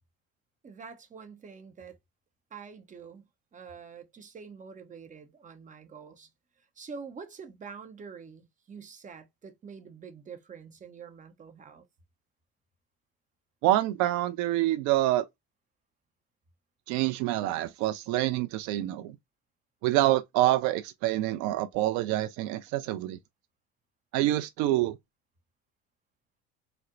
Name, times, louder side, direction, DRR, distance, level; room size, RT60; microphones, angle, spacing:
voice 1, 0.6-2.0 2.5-6.3 6.8-11.8, right 5 dB, 25° right, 0.8 m, -46 dB
voice 2, 13.6-15.3 16.9-19.2 19.8-23.2 24.1-25.0, right 15 dB, 70° right, 0.5 m, -26 dB
4.1 x 2.1 x 2.3 m
supercardioid pair, 95°, 30 cm